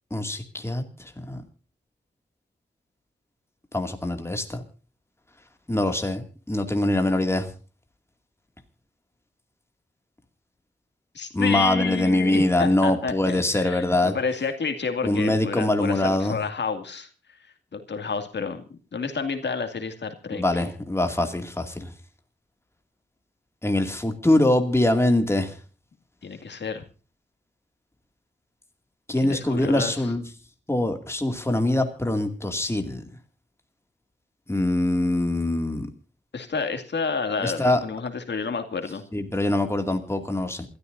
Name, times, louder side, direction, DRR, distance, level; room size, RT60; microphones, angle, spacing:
voice 1, 0.1-0.8 1.2-1.4 3.7-4.6 5.7-7.5 11.3-14.1 15.0-16.4 20.3-21.9 23.6-25.6 29.1-30.2 30.7-33.0 34.5-35.9 37.4-37.8 39.1-40.7, left 1 dB, 15° left, 6 dB, 2.3 m, -23 dB
voice 2, 11.1-17.1 17.7-18.6 18.9-20.6 26.2-26.8 29.2-30.1 36.3-39.0, left 5 dB, 70° left, 7 dB, 2.4 m, -30 dB
27.5 x 13.0 x 2.6 m, 0.36 s
wide cardioid pair, 115°, 18 cm